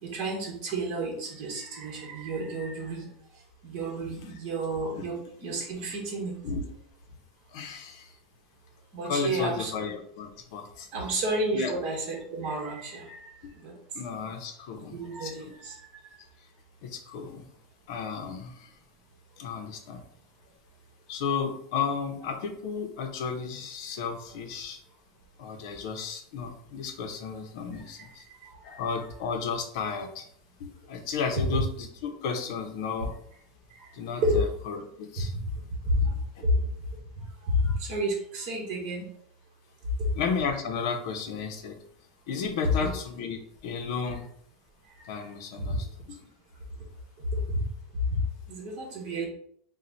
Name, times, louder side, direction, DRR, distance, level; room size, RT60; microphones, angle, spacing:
voice 1, 0.0-3.1 3.6-6.3 8.9-9.7 10.9-13.3 13.6-13.7 14.9-15.8 28.0-28.1 28.6-28.8 34.2-34.4 36.0-36.1 37.6-39.0 42.8-42.9 45.7-45.8 48.5-49.3, right 2 dB, 40° right, -1 dB, 1.4 m, -31 dB
voice 2, 7.5-8.1 9.0-10.9 11.5-11.7 13.4-13.5 13.9-15.5 16.8-17.4 17.9-18.7 19.4-20.0 21.1-24.8 25.4-28.2 28.6-30.3 30.6-33.1 33.9-35.3 36.4-36.5 40.1-41.8 42.3-44.3 45.1-46.2, left 5 dB, 55° left, 4 dB, 0.8 m, -33 dB
4.4 x 2.3 x 4.0 m, 0.66 s
supercardioid pair, 170°, 3 cm